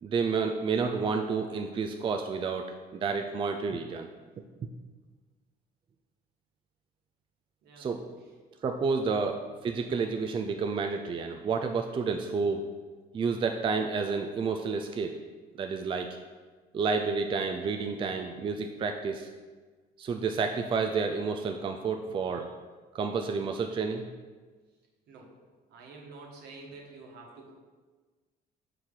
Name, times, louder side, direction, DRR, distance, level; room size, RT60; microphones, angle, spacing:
voice 1, 0.0-2.6 2.9-4.1 4.4-4.5 7.8-8.0 8.6-12.6 13.1-15.1 15.6-16.1 16.7-19.3 20.0-22.5 22.9-24.0, right 5 dB, 30° right, 4 dB, 0.4 m, -30 dB
voice 2, 25.1-25.4 25.7-27.5, right 3 dB, 70° right, 0 dB, 1.3 m, -48 dB
6.4 x 4.5 x 3.7 m, 1.4 s
cardioid pair, 110°, 17 cm